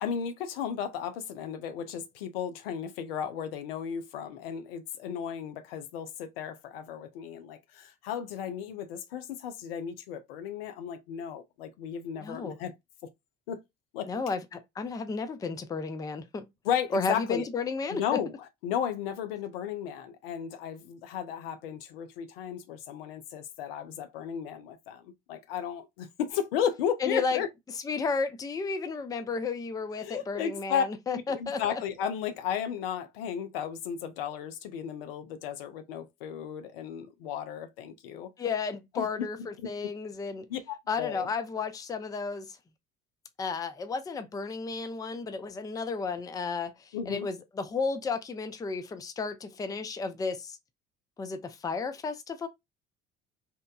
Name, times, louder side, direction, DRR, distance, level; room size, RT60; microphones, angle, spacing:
voice 1, 0.0-12.7 13.5-13.6 13.9-14.1 16.6-17.5 17.9-18.3 18.6-25.0 25.3-27.5 30.0-30.8 31.3-38.3 38.9-39.1 39.6-39.7 40.5-41.3 46.9-47.3, left 8 dB, 70° left, 0.5 m, -34 dB
voice 2, 12.2-12.6 14.1-16.4 16.9-18.2 27.0-27.4 27.8-31.8 38.4-40.5 40.9-42.6 43.4-50.6 51.2-52.5, left 4 dB, 10° left, 0.4 m, -33 dB
2.9 x 2.1 x 2.2 m
figure-of-eight pair, 55°, 30 cm